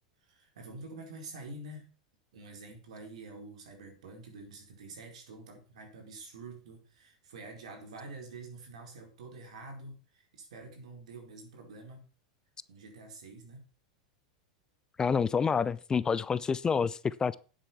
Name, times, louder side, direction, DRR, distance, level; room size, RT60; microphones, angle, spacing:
voice 1, 0.3-1.9 2.3-12.1 12.7-13.6, right 2 dB, 75° right, 4.5 m, -47 dB
voice 2, 15.0-17.4, left 6 dB, 20° left, 0.5 m, -28 dB
10.0 x 7.7 x 6.0 m
hypercardioid pair, 95°, 4 cm